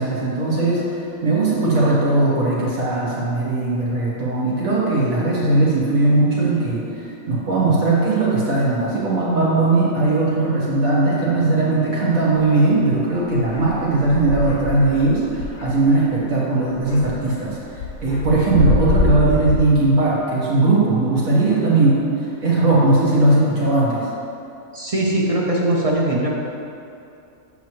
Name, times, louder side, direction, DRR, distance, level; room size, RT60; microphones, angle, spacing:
voice 1, 0.0-17.6 18.0-24.1, right 2 dB, 90° right, -6 dB, 1.9 m, -19 dB
sound 1, 12.5-12.7 13.3-16.3 16.7-19.6, left 3 dB, 90° left, 1.1 m, -25 dB
voice 2, 24.7-26.3, right 1 dB, 35° right, -4 dB, 0.6 m, -20 dB
6.7 x 6.2 x 3.1 m, 2.7 s
omnidirectional pair, 1.4 m